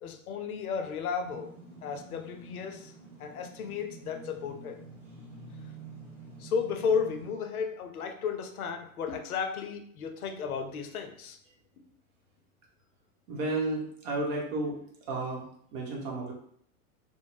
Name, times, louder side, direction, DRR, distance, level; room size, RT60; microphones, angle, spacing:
voice 1, 0.0-1.5 1.8-2.9 3.2-4.8 5.6-5.7 6.4-11.4, left 6 dB, 80° left, 5 dB, 0.6 m, -33 dB
sound 1, 1.2-7.3, right 3 dB, 5° right, 0.8 m, -48 dB
voice 2, 13.3-14.8 15.1-16.3, right 2 dB, 45° right, -1 dB, 1.0 m, -32 dB
2.5 x 2.0 x 3.1 m, 0.66 s
hypercardioid pair, 100°, 43 cm